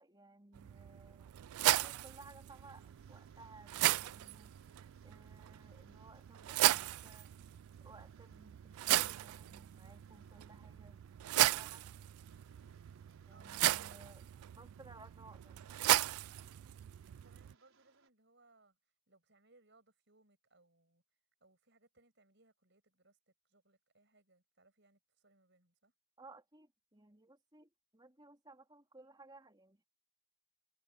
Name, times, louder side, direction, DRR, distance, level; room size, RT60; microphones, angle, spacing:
voice 1, 0.0-1.3 1.7-4.5 5.0-7.3 7.8-11.0 11.5-11.9 13.3-14.2 14.5-15.7 26.2-29.8, right 2 dB, 20° right, 3.1 m, -59 dB
sound 1, 0.5-17.5, right 15 dB, 90° right, 0.3 m, -36 dB
Rain, 2.4-18.1, right 5 dB, 75° right, 5.2 m, -70 dB
voice 2, 13.3-14.2 17.1-21.0 21.4-25.9, right 2 dB, 55° right, 6.6 m, -69 dB
head